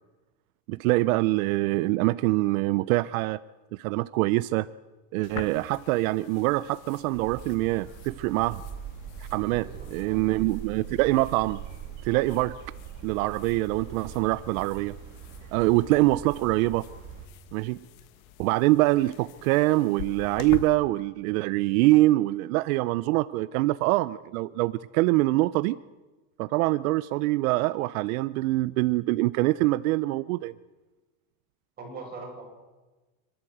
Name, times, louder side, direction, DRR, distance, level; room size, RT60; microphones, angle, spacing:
voice 1, 0.7-3.4 3.7-4.7 5.1-8.6 9.2-11.6 12.0-12.6 13.0-15.0 15.5-16.8 17.5-17.8 18.4-25.8 26.4-30.5, right 19 dB, 80° right, 17 dB, 0.7 m, -24 dB
sound 1, 5.2-20.7, left 11 dB, 80° left, 1.5 m, -46 dB
sound 2, 7.1-17.3, right 8 dB, 45° right, 2.7 m, -42 dB
voice 2, 9.5-10.2 31.8-32.4, right 3 dB, 20° right, -1 dB, 7.6 m, -41 dB
27.0 x 12.5 x 7.9 m, 1.2 s
supercardioid pair, 150°, 41 cm